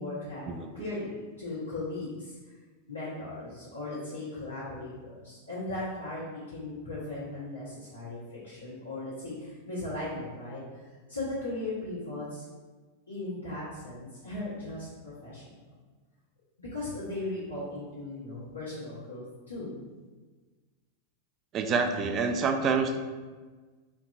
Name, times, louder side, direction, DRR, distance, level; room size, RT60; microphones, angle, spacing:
voice 1, 0.0-0.4 0.7-2.4 2.9-10.6 11.1-12.4 13.1-15.5 16.6-19.7, left 2 dB, 85° left, -12 dB, 1.2 m, -37 dB
voice 2, 21.5-23.0, right 5 dB, 35° right, 6 dB, 0.4 m, -27 dB
4.5 x 2.9 x 2.4 m, 1.4 s
figure-of-eight pair, 90°, 0 cm